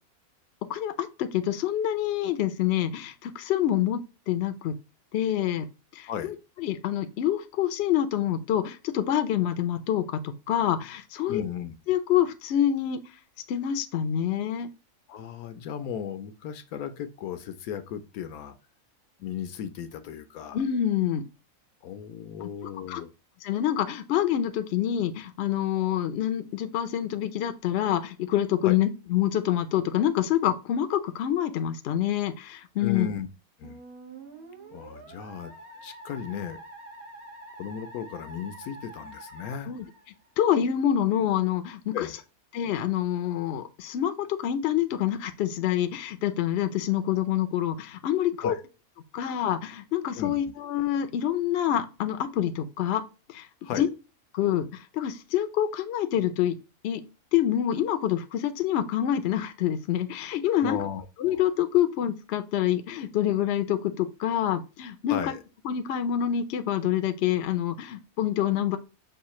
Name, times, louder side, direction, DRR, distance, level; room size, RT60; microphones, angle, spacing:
voice 1, 0.7-4.8 5.1-5.7 5.9-11.4 11.9-13.0 13.5-14.7 20.5-21.2 22.4-22.5 22.9-23.0 23.4-33.1 39.7-39.8 40.4-42.0 42.5-48.6 49.1-53.0 53.3-53.5 53.8-53.9 54.3-56.6 56.8-57.0 57.3-60.8 61.2-65.2 65.6-68.8, left 11 dB, 65° left, 0.7 m, -26 dB
voice 2, 11.3-11.7 15.1-18.5 19.2-20.6 21.8-23.1 28.6-28.8 32.8-33.3 33.6-33.8 34.7-35.5 35.8-36.6 37.6-39.7 41.9-42.1 48.4-48.6 50.2-50.4 53.6-53.9 60.6-61.0 65.1-65.4, left 8 dB, 85° left, 1.1 m, -35 dB
Musical instrument, 33.6-40.5, right 1 dB, 80° right, 1.6 m, -46 dB
5.5 x 2.4 x 3.0 m
omnidirectional pair, 1.5 m